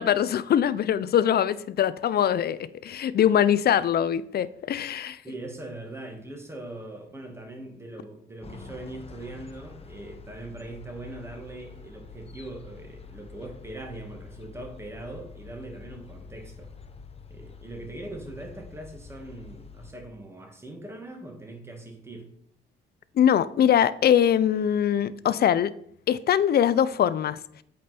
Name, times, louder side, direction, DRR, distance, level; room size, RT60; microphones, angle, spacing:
voice 1, 0.0-5.2 23.2-25.7 26.1-27.4, left 9 dB, 55° left, 0.5 m, -22 dB
voice 2, 5.2-16.7 17.3-22.3, right 2 dB, 15° right, 2.0 m, -41 dB
sound 1, 8.4-19.9, left 5 dB, 30° left, 0.9 m, -46 dB
8.5 x 5.2 x 4.4 m
cardioid pair, 90°, 20 cm